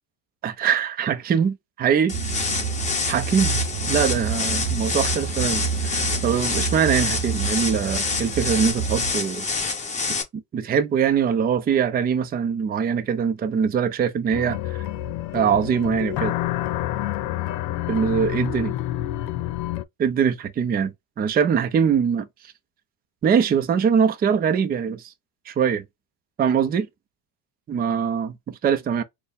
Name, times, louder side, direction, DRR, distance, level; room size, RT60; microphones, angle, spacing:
voice 1, 0.4-2.2 3.1-3.6 3.9-9.5 10.3-14.9 15.3-16.3 17.9-18.7 20.0-22.3 23.2-25.1 25.5-25.8 26.4-26.9 27.7-29.0, right 7 dB, 20° right, 0.5 m, -22 dB
sound 1, 2.1-10.2, left 4 dB, 15° left, 1.3 m, -27 dB
sound 2, 2.1-9.1, right 6 dB, 35° right, 1.0 m, -29 dB
sound 3, 14.3-19.8, left 14 dB, 85° left, 0.8 m, -28 dB
4.1 x 2.3 x 3.4 m
supercardioid pair, 125°, 50 cm